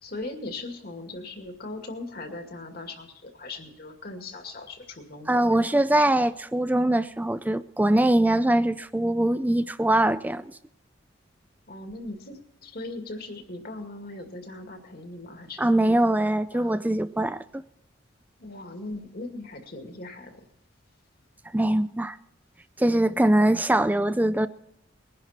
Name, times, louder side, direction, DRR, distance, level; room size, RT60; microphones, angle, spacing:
voice 1, 0.0-5.8 11.7-16.8 18.4-20.4, left 2 dB, 50° left, 5 dB, 2.2 m, -39 dB
voice 2, 5.3-10.5 15.6-17.4 21.5-22.2 22.8-24.5, right 1 dB, 10° right, 13 dB, 0.4 m, -22 dB
21.0 x 11.0 x 4.3 m, 0.83 s
head